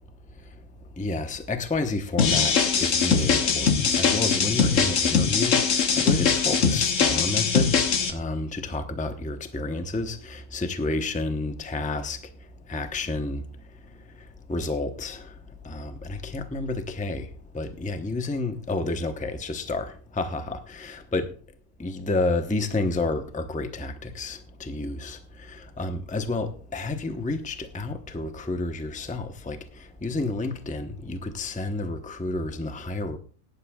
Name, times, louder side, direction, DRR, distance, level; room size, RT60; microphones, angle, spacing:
voice 1, 0.1-21.3 21.8-33.2, left 2 dB, 10° left, 0.4 m, -31 dB
sound 1, 2.2-8.1, left 6 dB, 50° left, 1.3 m, -22 dB
19.5 x 11.0 x 2.3 m
omnidirectional pair, 1.9 m